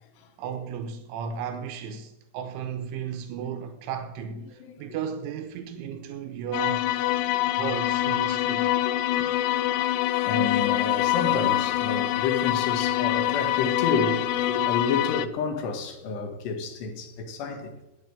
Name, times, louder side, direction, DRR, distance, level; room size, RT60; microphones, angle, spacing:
voice 1, 0.4-6.8 7.5-8.7, right 7 dB, 85° right, 3.2 m, -34 dB
sound 1, 6.5-15.3, left 14 dB, 85° left, 3.2 m, -25 dB
voice 2, 10.3-17.7, left 4 dB, 70° left, 3.3 m, -30 dB
10.5 x 9.2 x 8.7 m
omnidirectional pair, 5.6 m